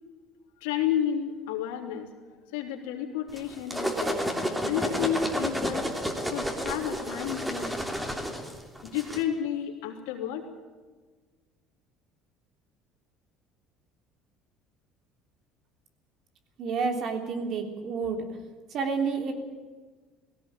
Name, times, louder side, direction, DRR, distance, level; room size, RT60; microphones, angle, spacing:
voice 1, 0.6-2.1 2.5-4.2 4.6-6.0 6.3-7.7 8.8-10.4, left 9 dB, 85° left, 2 dB, 3.3 m, -31 dB
sound 1, 3.3-9.2, equal, 10° right, 3.1 m, -31 dB
voice 2, 16.6-18.3 18.7-19.3, right 5 dB, 55° right, 4 dB, 3.4 m, -29 dB
18.0 x 17.0 x 9.0 m, 1.4 s
supercardioid pair, 95°, 0 cm